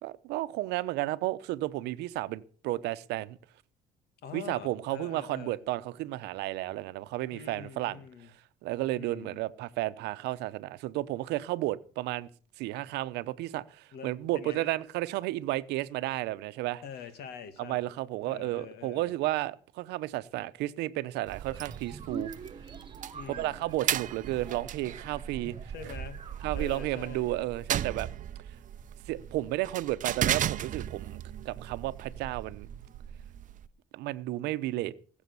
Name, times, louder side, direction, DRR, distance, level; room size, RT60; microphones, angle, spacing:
voice 1, 0.0-3.4 4.3-8.0 8.6-12.3 12.6-16.8 17.6-22.3 23.4-25.6 26.4-28.1 29.1-32.7 33.9-34.9, right 16 dB, 90° right, 0.9 m, -33 dB
voice 2, 4.2-5.6 7.3-8.3 8.9-9.5 13.9-14.7 16.8-17.8 18.2-19.1 23.1-23.7 25.7-26.2 26.5-27.3, left 7 dB, 70° left, 2.4 m, -45 dB
sound 1, 21.3-33.7, right 10 dB, 50° right, 0.7 m, -36 dB
sound 2, 21.5-26.7, right 5 dB, 30° right, 1.5 m, -45 dB
20.0 x 7.3 x 7.0 m
cardioid pair, 110°, 17 cm